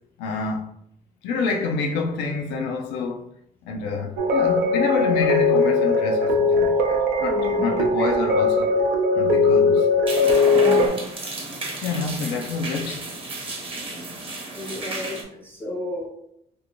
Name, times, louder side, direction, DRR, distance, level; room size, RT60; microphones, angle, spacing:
voice 1, 0.2-0.7 1.2-3.3 3.7-8.8 9.1-9.9 11.8-13.0, left 4 dB, 85° left, 0.4 m, -27 dB
sound 1, 4.2-10.9, left 3 dB, 75° right, 0.5 m, -19 dB
voice 2, 7.3-8.1 10.5-11.1 14.6-16.1, equal, 10° left, 0.4 m, -33 dB
sound 2, 10.1-15.2, right 2 dB, 35° right, 0.8 m, -32 dB
2.7 x 2.5 x 2.8 m
cardioid pair, 110°, 17 cm